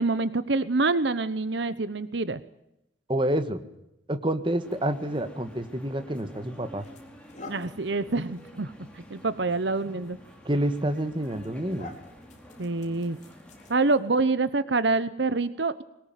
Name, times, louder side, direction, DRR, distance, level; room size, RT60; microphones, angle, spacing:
voice 1, 0.0-2.4 7.5-10.2 12.6-13.2 13.7-15.8, right 3 dB, 65° right, 14 dB, 1.0 m, -26 dB
voice 2, 3.1-3.6 4.1-6.9 10.5-11.9, right 1 dB, 25° right, 9 dB, 1.7 m, -28 dB
sound 1, 4.6-13.8, equal, 5° left, 4.1 m, -50 dB
sound 2, 6.0-6.2 6.8-14.2, left 2 dB, 40° left, 4.1 m, -50 dB
23.0 x 19.0 x 9.2 m, 0.86 s
head